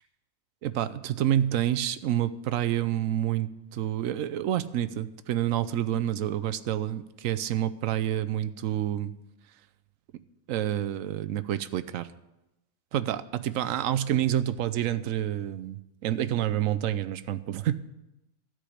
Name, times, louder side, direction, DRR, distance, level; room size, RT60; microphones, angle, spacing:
voice 1, 0.6-9.1 10.5-12.1 12.9-17.7, right 11 dB, 85° right, 14 dB, 1.0 m, -28 dB
13.0 x 5.1 x 8.4 m, 0.93 s
omnidirectional pair, 1.4 m